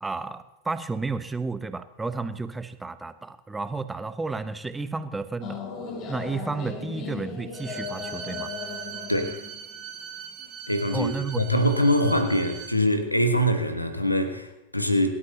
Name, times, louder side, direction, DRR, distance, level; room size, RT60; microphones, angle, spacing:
voice 1, 0.0-5.6 6.1-8.5 10.9-11.4, right 3 dB, 10° right, 12 dB, 0.9 m, -32 dB
sound 1, 5.4-10.5, left 5 dB, 35° left, 2.7 m, -37 dB
Bowed string instrument, 7.5-12.7, right 8 dB, 35° right, 2.7 m, -40 dB
voice 2, 10.7-15.1, equal, 85° left, 7 dB, 1.5 m, -23 dB
23.5 x 12.5 x 2.9 m, 0.94 s
figure-of-eight pair, 90°, 0 cm